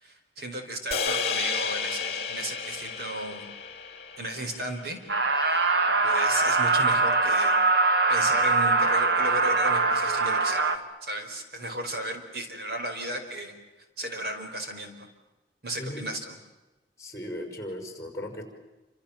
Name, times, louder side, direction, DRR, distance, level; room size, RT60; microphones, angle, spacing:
voice 1, 0.0-3.5 4.2-5.0 5.5-5.7 6.0-7.6 8.1-13.6 14.0-14.9 15.6-16.3, right 1 dB, 60° right, 5 dB, 4.8 m, -35 dB
sound 1, 0.9-5.3, left 5 dB, 35° left, 3.0 m, -32 dB
sound 2, 5.1-10.8, right 3 dB, 80° right, 2.1 m, -22 dB
voice 2, 15.7-16.0 17.0-18.4, left 1 dB, 15° left, 5 dB, 5.6 m, -37 dB
29.0 x 27.0 x 7.4 m, 1.1 s
head